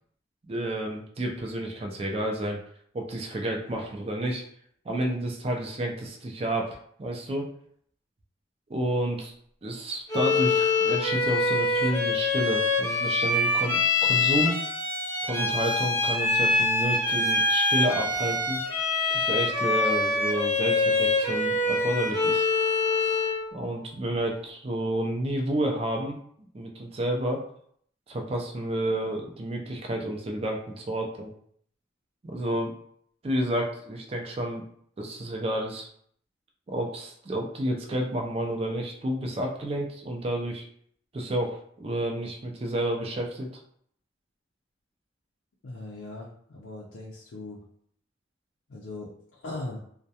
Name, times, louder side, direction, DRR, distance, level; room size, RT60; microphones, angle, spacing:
voice 1, 0.5-2.6 2.9-4.4 4.9-7.5 8.7-9.3 9.6-14.6 15.2-18.6 19.1-22.5 23.5-26.2 26.5-27.4 28.1-31.3 32.2-32.7 33.2-34.6 35.0-35.9 36.7-40.6 41.1-43.5, right 1 dB, 30° right, 1 dB, 0.4 m, -30 dB
Bowed string instrument, 10.1-23.5, left 3 dB, 20° left, 0.7 m, -25 dB
voice 2, 45.6-47.6 48.7-49.8, left 2 dB, 90° left, -4 dB, 0.5 m, -39 dB
2.2 x 2.1 x 2.7 m, 0.64 s
head